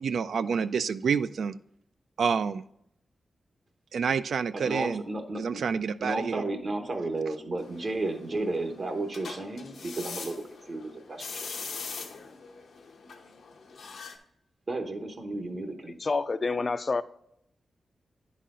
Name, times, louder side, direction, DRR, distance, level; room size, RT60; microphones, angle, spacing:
voice 1, 0.0-1.6 2.2-2.6 3.9-5.0 5.4-6.4, right 6 dB, 80° right, 0.3 m, -28 dB
voice 2, 4.5-5.6 6.0-11.6 14.7-16.0, right 2 dB, 50° right, 0.9 m, -33 dB
sound 1, 7.6-14.2, left 5 dB, 90° left, 0.8 m, -42 dB
voice 3, 16.0-17.0, left 3 dB, 40° left, 0.3 m, -28 dB
10.0 x 4.2 x 3.7 m
wide cardioid pair, 105°, 0 cm